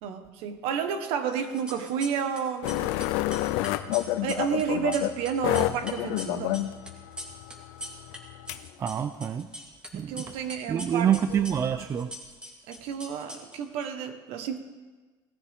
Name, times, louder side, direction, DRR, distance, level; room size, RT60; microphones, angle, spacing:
voice 1, 0.0-2.9 4.2-6.7 9.9-11.4 12.7-14.6, right 7 dB, 75° right, 7 dB, 1.4 m, -31 dB
sound 1, 1.4-2.4 2.6-8.2 8.4-9.9 10.2-13.8, equal, 10° right, 2.0 m, -41 dB
sound 2, 2.6-8.7, left 15 dB, 85° left, 0.6 m, -29 dB
voice 2, 8.8-9.5 9.9-10.4 10.7-12.2, right 9 dB, 25° right, 11 dB, 0.4 m, -27 dB
18.0 x 14.0 x 3.7 m, 1.3 s
cardioid pair, 160°, 10 cm